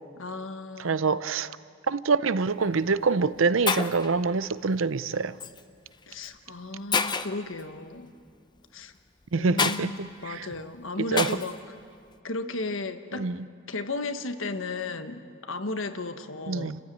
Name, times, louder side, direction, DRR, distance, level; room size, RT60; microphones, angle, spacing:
voice 1, 0.2-1.2 6.1-8.1 8.7-8.9 9.3-11.5 12.2-13.3 13.7-16.7, left 2 dB, 80° left, 1.4 m, -35 dB
voice 2, 0.8-1.5 1.9-5.4 9.3-10.5 11.0-11.4 13.1-13.5 16.5-16.8, right 4 dB, 85° right, 0.7 m, -26 dB
Shatter, 2.4-2.6 3.3-3.4 3.7-4.1 5.4-5.6 6.2-6.3 6.9-7.4 9.6-9.8 11.2-11.5, left 5 dB, 20° left, 0.7 m, -27 dB
29.5 x 15.0 x 9.3 m
head